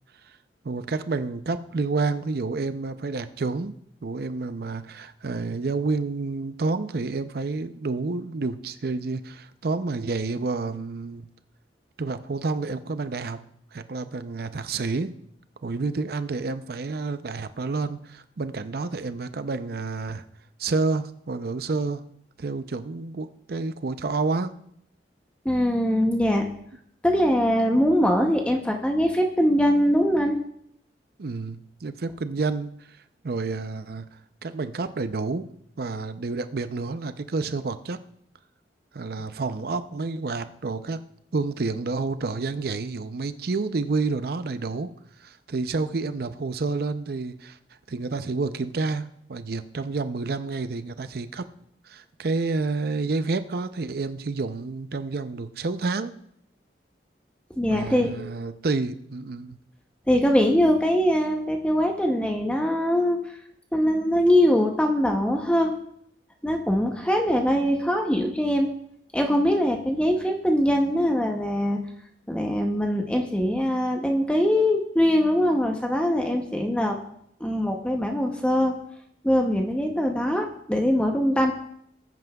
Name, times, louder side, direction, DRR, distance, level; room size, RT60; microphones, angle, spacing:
voice 1, 0.6-3.8 4.0-11.2 12.0-13.4 13.7-15.1 15.6-20.2 20.6-22.0 22.4-24.5 31.2-32.7 33.2-34.0 34.4-35.5 35.8-38.0 38.9-41.0 41.3-44.9 45.2-47.6 47.9-51.4 51.9-56.1 57.7-59.6, right 3 dB, 60° right, 11 dB, 0.5 m, -29 dB
voice 2, 25.4-26.5 27.0-30.4 57.6-58.4 60.1-63.2 63.7-65.7 66.4-68.7 69.1-71.8 72.3-77.0 77.4-78.7 79.2-81.5, equal, 5° left, 2 dB, 0.7 m, -22 dB
18.5 x 9.4 x 2.3 m, 0.71 s
head